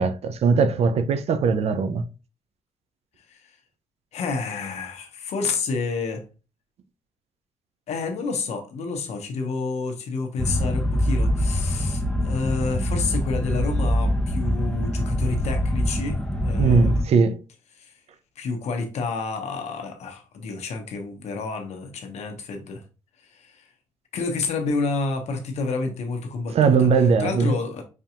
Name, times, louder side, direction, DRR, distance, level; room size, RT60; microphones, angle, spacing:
voice 1, 0.0-2.0 16.6-17.4 26.5-27.5, right 5 dB, 60° right, 0.6 m, -20 dB
voice 2, 4.1-6.3 7.9-17.1 17.8-17.9 18.4-22.8 23.2-23.7 24.1-26.9 27.2-27.8, left 4 dB, 70° left, 1.0 m, -29 dB
sound 1, 10.4-17.0, equal, 5° left, 1.0 m, -24 dB
5.4 x 2.7 x 2.4 m
supercardioid pair, 65°, 12 cm